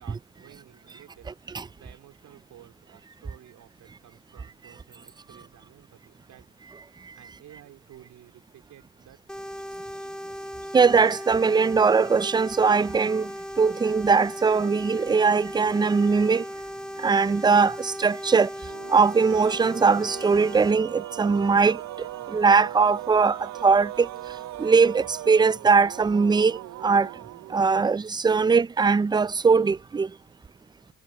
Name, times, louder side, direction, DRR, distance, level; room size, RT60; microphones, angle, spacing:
voice 1, 0.0-6.6 7.1-9.2, right 12 dB, 80° right, 4.2 m, -53 dB
sound 1, 9.3-20.7, equal, 5° left, 2.4 m, -37 dB
voice 2, 10.7-16.5 17.0-18.5 18.9-24.1 24.6-27.1 27.5-30.1, right 5 dB, 15° right, 0.4 m, -21 dB
sound 2, 18.6-28.0, right 13 dB, 65° right, 0.6 m, -39 dB
cardioid pair, 90°, 30 cm